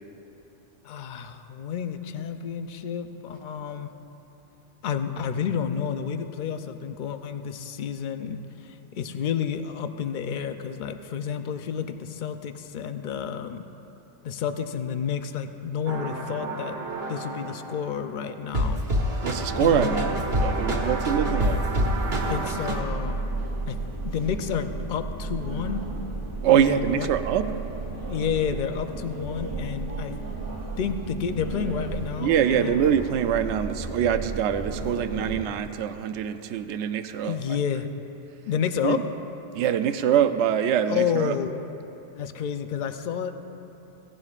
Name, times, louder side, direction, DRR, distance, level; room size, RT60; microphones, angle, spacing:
voice 1, 0.8-3.9 4.8-13.6 14.2-16.8 17.1-18.8 19.5-20.0 22.2-23.2 23.6-23.8 24.0-25.8 26.5-27.1 28.1-30.1 30.8-32.8 37.2-37.9 38.5-39.0 40.9-41.6 42.2-43.5, left 7 dB, 50° left, 8 dB, 0.6 m, -30 dB
sound 1, 15.9-17.9 18.5-22.8, equal, 60° right, 1.6 m, -28 dB
voice 2, 19.2-21.6 22.2-22.5 26.4-27.5 32.2-37.6 38.8-39.0 39.5-41.3, right 9 dB, 75° right, 10 dB, 0.9 m, -24 dB
sound 2, 19.5-35.4, right 3 dB, 30° right, 1.2 m, -33 dB
17.0 x 15.5 x 2.4 m, 2.9 s
omnidirectional pair, 1.2 m